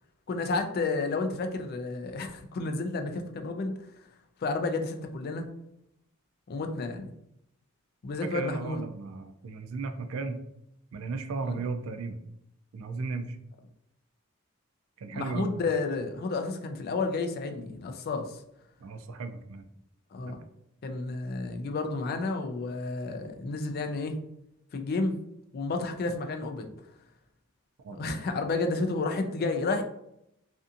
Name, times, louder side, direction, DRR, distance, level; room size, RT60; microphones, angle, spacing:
voice 1, 0.3-3.8 4.4-5.5 6.5-7.1 8.0-8.8 11.5-11.6 15.1-18.4 20.1-20.4 20.8-24.2 24.7-25.2 25.5-26.7 27.9-29.8, left 3 dB, 50° left, 6 dB, 0.3 m, -31 dB
voice 2, 8.2-10.4 10.9-12.2 12.7-13.4 15.0-15.6 18.8-19.7 20.3-20.4 27.8-28.0, right 4 dB, 90° right, 8 dB, 0.4 m, -35 dB
2.6 x 2.5 x 2.4 m, 0.79 s
head